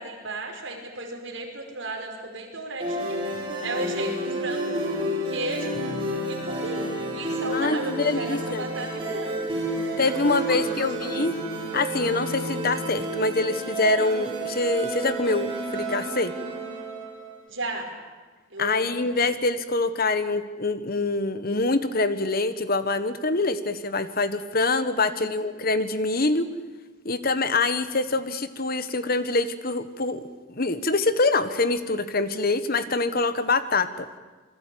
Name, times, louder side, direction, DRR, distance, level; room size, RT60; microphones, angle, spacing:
voice 1, 0.0-3.2 3.6-4.7 5.3-5.8 6.3-9.4 10.0-11.1 17.5-17.9 18.5-18.9 25.0-25.5, right 2 dB, 65° right, 3 dB, 5.1 m, -34 dB
sound 1, 2.8-17.3, right 1 dB, 25° right, 6.3 m, -30 dB
voice 2, 7.5-8.6 10.0-11.4 11.7-16.3 18.6-26.5 27.0-30.2 30.5-34.0, left 3 dB, 45° left, 12 dB, 1.4 m, -25 dB
27.5 x 21.5 x 8.7 m, 1.3 s
head